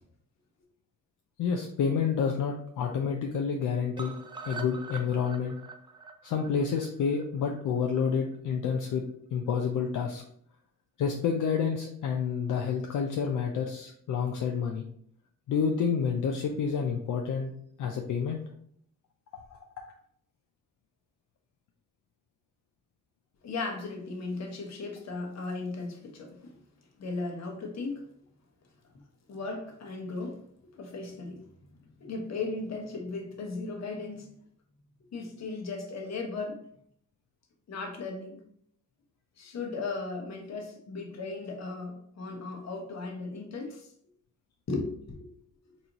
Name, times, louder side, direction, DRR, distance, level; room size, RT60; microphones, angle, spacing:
voice 1, 1.4-4.1 4.4-5.6 6.2-9.0 9.3-10.2 11.0-14.9 15.5-17.5 17.8-18.4 19.5-19.6, left 6 dB, 75° left, 2 dB, 0.5 m, -29 dB
sound 1, 4.0-8.0 8.3-8.4 8.7-8.8 9.1-9.2, right 4 dB, 15° right, 0.3 m, -44 dB
voice 2, 23.4-26.6 27.0-28.1 29.3-30.4 30.8-31.4 31.8-34.3 35.1-36.7 37.7-38.4 39.4-43.9 44.7-45.3, left 3 dB, 55° left, 2 dB, 1.0 m, -36 dB
4.1 x 2.6 x 2.9 m, 0.66 s
cardioid pair, 105°, 32 cm